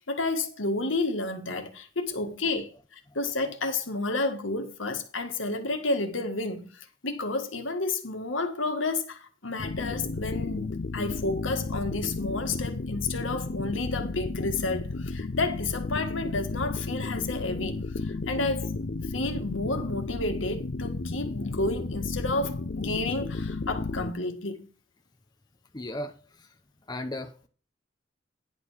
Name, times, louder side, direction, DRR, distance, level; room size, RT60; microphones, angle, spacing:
voice 1, 0.1-18.7 19.1-24.7, left 2 dB, 80° left, 1.7 m, -31 dB
sound 1, 9.6-24.1, left 3 dB, 55° left, 0.6 m, -33 dB
voice 2, 25.7-26.5 26.9-27.5, left 1 dB, 20° left, 0.8 m, -36 dB
10.5 x 5.3 x 6.2 m
head